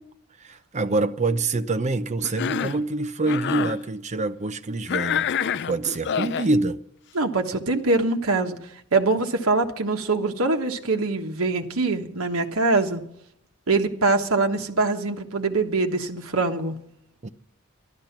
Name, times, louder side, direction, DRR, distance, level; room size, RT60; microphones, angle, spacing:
voice 1, 0.4-5.3 5.7-6.8 17.2-17.3, right 2 dB, 35° right, 0.6 m, -25 dB
Cough, 2.2-2.8 3.2-3.8 4.9-6.5, left 7 dB, 55° left, 0.5 m, -27 dB
voice 2, 7.1-8.6 8.9-13.0 13.7-16.8, right 3 dB, 80° right, 1.3 m, -23 dB
13.0 x 12.0 x 5.8 m
head